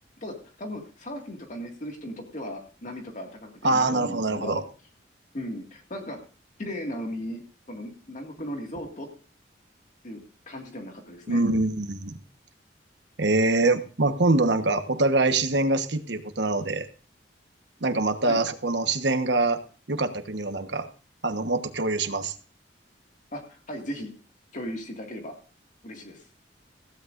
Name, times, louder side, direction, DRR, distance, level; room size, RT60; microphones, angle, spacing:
voice 1, 0.2-4.6 5.3-6.2 6.6-7.4 7.7-9.1 10.0-11.4 18.2-18.4 23.3-24.1 24.5-25.3 25.8-26.3, equal, 45° left, 2 dB, 2.1 m, -37 dB
voice 2, 3.6-4.6 11.3-12.2 13.2-16.9 17.8-19.6 19.9-20.9 21.2-22.3, right 2 dB, 75° right, 8 dB, 1.3 m, -24 dB
15.5 x 15.0 x 2.6 m, 0.38 s
head